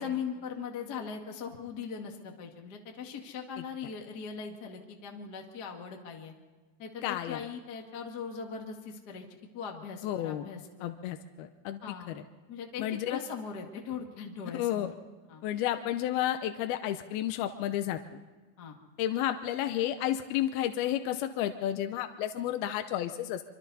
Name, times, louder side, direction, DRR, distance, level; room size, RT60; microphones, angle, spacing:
voice 1, 0.0-6.3 6.8-9.2 9.5-10.9 11.8-12.1 12.5-14.9 15.3-15.4 18.6-18.8, left 6 dB, 45° left, 2 dB, 1.3 m, -40 dB
voice 2, 7.0-7.4 10.0-10.5 10.8-12.2 12.8-13.2 14.6-14.9 15.4-18.2 19.0-23.4, left 12 dB, 75° left, 7 dB, 2.4 m, -32 dB
26.0 x 25.0 x 4.1 m, 1.3 s
omnidirectional pair, 5.0 m